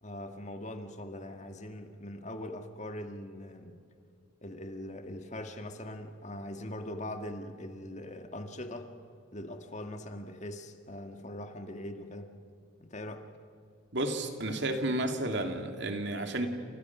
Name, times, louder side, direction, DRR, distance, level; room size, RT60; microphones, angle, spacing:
voice 1, 0.0-3.8 4.4-8.9 9.3-12.3 12.8-13.3, left 1 dB, 35° left, 6 dB, 1.8 m, -41 dB
voice 2, 13.9-16.5, right 1 dB, 55° right, 5 dB, 2.7 m, -32 dB
30.0 x 28.5 x 6.1 m, 2.5 s
head